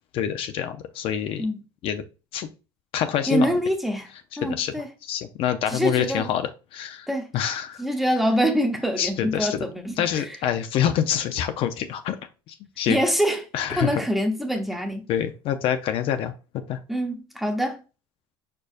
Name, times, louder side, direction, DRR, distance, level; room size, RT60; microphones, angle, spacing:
voice 1, 0.1-1.4 1.8-2.0 2.3-2.5 2.9-3.5 4.5-4.7 5.0-7.1 7.3-7.8 9.0-9.7 10.0-12.2 12.5-13.0 13.5-14.0 15.1-16.3 16.7-16.8, left 10 dB, 55° left, 0.5 m, -26 dB
voice 2, 3.3-4.1 4.4-4.9 5.7-6.3 7.1-7.3 7.8-10.4 12.9-13.4 13.8-15.1 16.9-17.8, equal, ahead, 0.9 m, -25 dB
4.9 x 4.5 x 2.4 m
cardioid pair, 125°, 11 cm